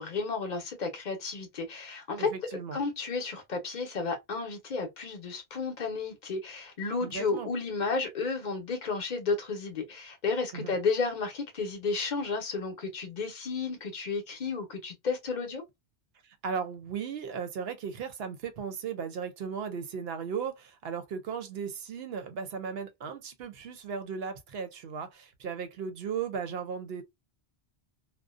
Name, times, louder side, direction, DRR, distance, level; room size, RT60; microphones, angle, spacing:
voice 1, 0.0-2.3 2.7-15.6, left 4 dB, 45° left, 0.8 m, -32 dB
voice 2, 2.2-2.8 7.0-7.5 10.5-10.7 16.2-27.0, right 6 dB, 65° right, 0.7 m, -36 dB
2.4 x 2.1 x 2.4 m
omnidirectional pair, 1.2 m